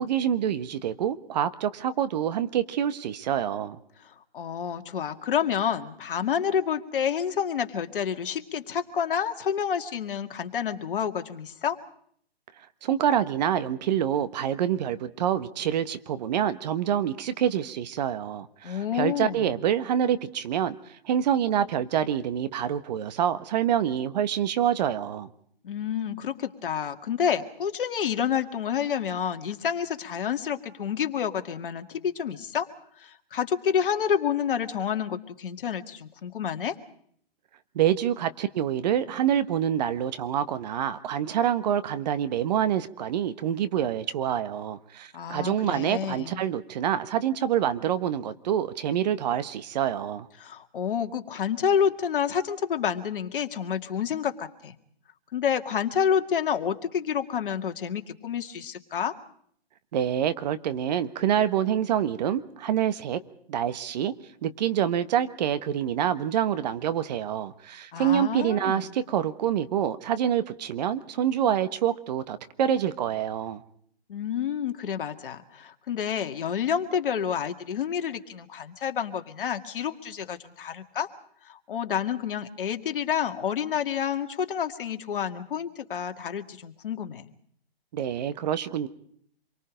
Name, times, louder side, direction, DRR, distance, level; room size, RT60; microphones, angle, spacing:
voice 1, 0.0-3.8 12.8-20.8 21.0-25.3 37.7-50.3 59.9-63.2 63.5-64.1 64.4-73.6 87.9-88.9, right 10 dB, 45° right, 12 dB, 1.3 m, -26 dB
voice 2, 4.0-11.8 18.6-19.6 25.6-32.7 33.0-36.8 45.1-46.4 50.4-54.7 55.3-59.1 67.9-69.0 74.1-81.1 81.4-87.3, left 8 dB, 60° left, 6 dB, 2.1 m, -29 dB
27.0 x 23.5 x 5.2 m, 0.64 s
hypercardioid pair, 140°, 31 cm